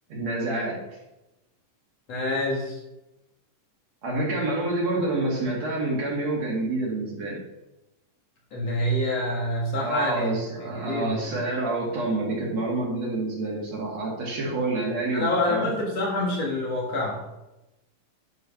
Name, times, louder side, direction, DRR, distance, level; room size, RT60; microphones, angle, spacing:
voice 1, 0.1-0.8 4.0-7.4 9.8-15.7, right 2 dB, 55° right, -3 dB, 3.0 m, -28 dB
voice 2, 2.1-2.8 8.5-11.2 15.1-17.2, left 1 dB, 50° left, -3 dB, 2.6 m, -27 dB
11.0 x 4.7 x 5.8 m, 0.96 s
omnidirectional pair, 4.0 m